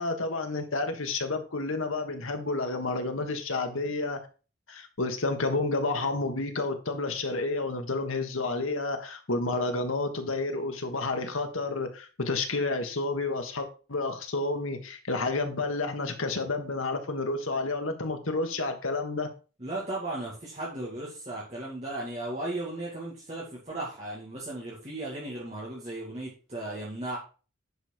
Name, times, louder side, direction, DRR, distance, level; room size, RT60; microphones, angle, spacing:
voice 1, 0.0-4.2 4.7-19.3, left 3 dB, 85° left, 1.6 m, -30 dB
voice 2, 19.6-27.2, right 2 dB, 30° right, 2.2 m, -36 dB
10.0 x 5.1 x 4.5 m
head